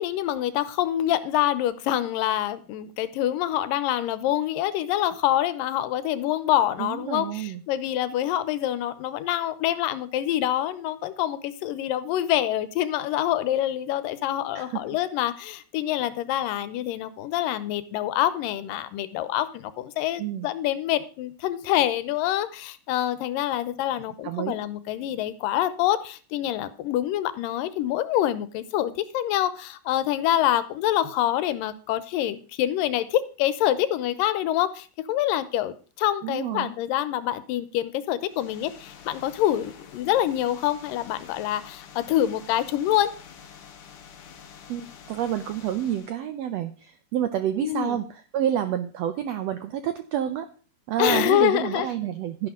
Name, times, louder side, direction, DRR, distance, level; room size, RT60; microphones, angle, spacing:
voice 1, 0.0-43.1 47.6-48.0 51.0-51.9, left 12 dB, 85° left, 14 dB, 2.5 m, -26 dB
voice 2, 6.8-7.6 14.5-14.8 20.2-20.5 24.2-24.6 36.2-36.7 44.7-50.5 50.9-52.5, right 10 dB, 85° right, 10 dB, 1.5 m, -29 dB
sound 1, 38.3-46.2, left 7 dB, 55° left, 1.6 m, -47 dB
12.0 x 11.0 x 3.7 m, 0.37 s
omnidirectional pair, 3.9 m